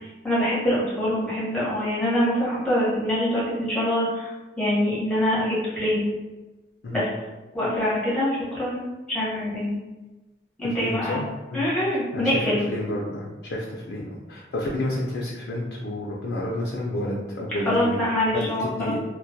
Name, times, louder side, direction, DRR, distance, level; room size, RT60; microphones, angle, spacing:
voice 1, 0.2-4.3 4.6-6.1 6.9-7.1 7.5-9.8 10.6-11.2 11.5-12.6 17.6-18.9, left 1 dB, 5° left, -9 dB, 0.8 m, -24 dB
voice 2, 10.6-11.3 11.5-11.6 12.1-12.4 12.7-18.0 18.3-19.0, left 1 dB, 70° left, -4 dB, 0.4 m, -30 dB
2.2 x 2.1 x 2.6 m, 1.1 s
head